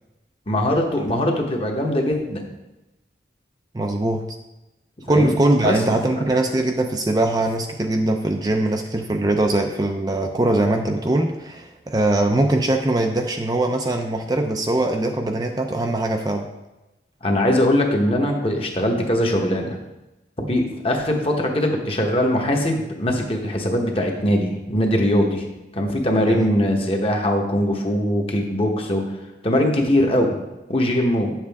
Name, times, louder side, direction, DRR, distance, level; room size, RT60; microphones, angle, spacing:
voice 1, 0.5-2.4 5.1-5.3 5.6-6.0 17.2-19.8 20.4-25.5 25.7-29.0 29.4-30.3 30.7-31.3, left 1 dB, 30° left, 2 dB, 1.1 m, -21 dB
voice 2, 3.7-4.2 5.1-16.5 26.2-26.5, right 1 dB, 20° right, 3 dB, 0.5 m, -21 dB
9.3 x 7.4 x 3.5 m, 1.0 s
head